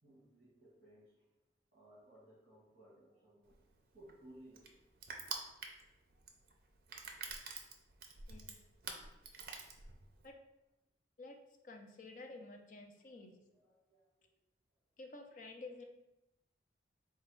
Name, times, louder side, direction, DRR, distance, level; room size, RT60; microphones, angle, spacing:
voice 1, 0.0-1.3 1.7-3.6 3.9-4.8 12.9-13.0 13.3-14.3, right 1 dB, 35° right, -8 dB, 1.2 m, -61 dB
Crushing, 3.5-10.3, right 5 dB, 50° right, 0.5 m, -47 dB
voice 2, 8.3-8.6 10.2-10.3 11.2-11.4 11.6-13.4 15.0-15.8, left 2 dB, 45° left, 2 dB, 0.5 m, -51 dB
4.0 x 2.3 x 4.5 m, 0.92 s
head